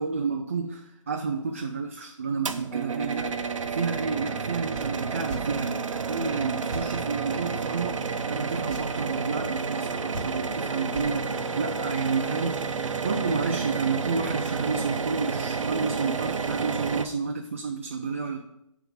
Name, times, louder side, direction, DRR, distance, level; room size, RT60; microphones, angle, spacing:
voice 1, 0.0-18.4, right 4 dB, 25° right, 3 dB, 0.3 m, -30 dB
sound 1, 2.5-17.1, right 5 dB, 75° right, 0.7 m, -30 dB
sound 2, 4.7-4.9 5.2-5.4 6.7-6.9 8.6-8.8 10.1-10.5 10.9-11.1, right 1 dB, 5° left, 2.4 m, -37 dB
9.4 x 3.5 x 6.2 m, 0.84 s
hypercardioid pair, 165°, 17 cm